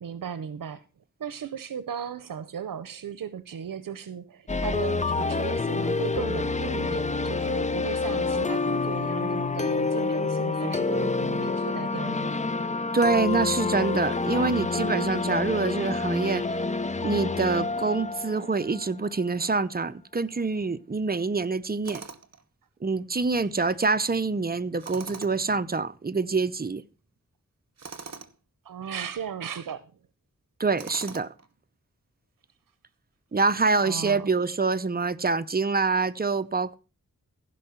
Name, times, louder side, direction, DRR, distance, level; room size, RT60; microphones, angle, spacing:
voice 1, 0.0-0.8 1.2-12.4 23.6-23.7 28.6-29.8 33.8-34.3, right 7 dB, 85° right, 0.7 m, -36 dB
sound 1, 4.5-19.3, left 3 dB, 20° left, 0.5 m, -28 dB
voice 2, 12.9-16.4 17.0-22.0 22.8-26.8 30.6-31.3 33.3-36.8, right 4 dB, 30° right, 0.7 m, -26 dB
Tools, 21.8-22.4 24.8-25.5 27.8-28.3 30.8-31.5, right 4 dB, 50° right, 1.0 m, -42 dB
15.0 x 5.5 x 5.7 m
wide cardioid pair, 90°, 33 cm